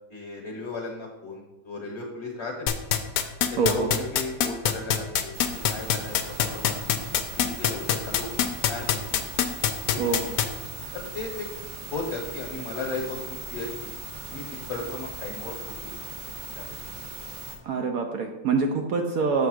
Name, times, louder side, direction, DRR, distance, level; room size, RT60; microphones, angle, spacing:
voice 1, 0.1-2.7 3.5-5.3 5.7-6.8 7.3-9.2 9.9-10.4 10.9-11.5 11.9-13.9 14.3-15.5 15.8-16.8, left 3 dB, 45° left, 1 dB, 1.1 m, -36 dB
sound 1, 2.7-10.4, left 9 dB, 70° left, 1.0 m, -22 dB
voice 2, 3.6-3.9 10.0-10.2 17.6-19.5, right 4 dB, 65° right, 3 dB, 0.9 m, -25 dB
sound 2, 5.3-17.6, right 2 dB, 90° right, 1.4 m, -39 dB
7.3 x 3.4 x 6.3 m, 1.1 s
omnidirectional pair, 1.9 m